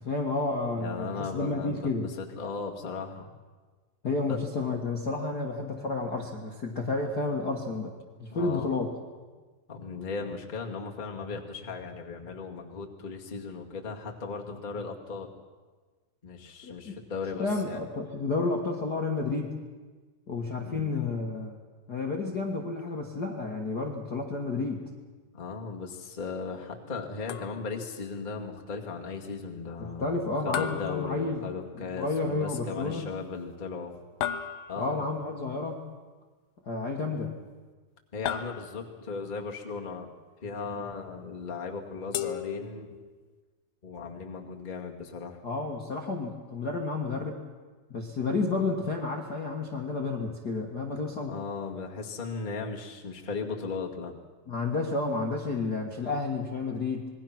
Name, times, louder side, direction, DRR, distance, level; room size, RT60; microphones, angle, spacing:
voice 1, 0.0-2.1 4.0-8.9 16.6-17.0 17.4-19.5 20.3-21.6 21.9-24.9 29.8-31.4 31.9-33.1 34.8-35.8 36.6-37.4 45.4-47.4 47.9-51.4 54.5-57.1, left 3 dB, 40° left, 0 dB, 1.6 m, -31 dB
voice 2, 0.7-3.3 4.3-4.4 8.3-8.7 9.7-15.3 16.2-17.9 20.6-21.0 25.3-30.2 30.4-33.9 34.7-35.1 38.1-40.1 40.4-42.9 43.8-45.4 51.3-54.1, left 4 dB, 20° left, 0 dB, 1.5 m, -37 dB
sound 1, 27.3-27.9 30.5-31.8 34.2-35.1 38.3-39.1 42.1-43.2, left 9 dB, 90° left, 2.6 m, -36 dB
27.0 x 21.0 x 6.0 m, 1.4 s
omnidirectional pair, 3.9 m